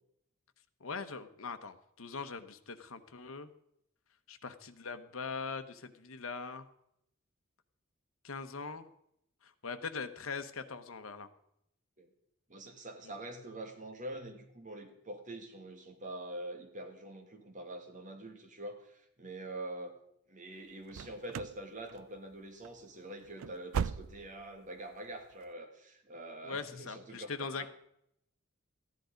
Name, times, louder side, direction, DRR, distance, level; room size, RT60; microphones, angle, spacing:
voice 1, 0.8-3.5 4.3-6.7 8.2-8.9 9.4-11.3 26.4-27.7, left 5 dB, 80° left, 9 dB, 1.0 m, -41 dB
voice 2, 12.5-19.9 20.3-27.7, right 1 dB, 40° right, 5 dB, 1.8 m, -45 dB
sound 1, 20.9-21.6 21.9-22.3 22.6-22.8 23.2-24.5 24.8-24.9 25.4-25.5, right 7 dB, 80° right, 0.4 m, -38 dB
14.0 x 10.5 x 5.1 m, 0.77 s
head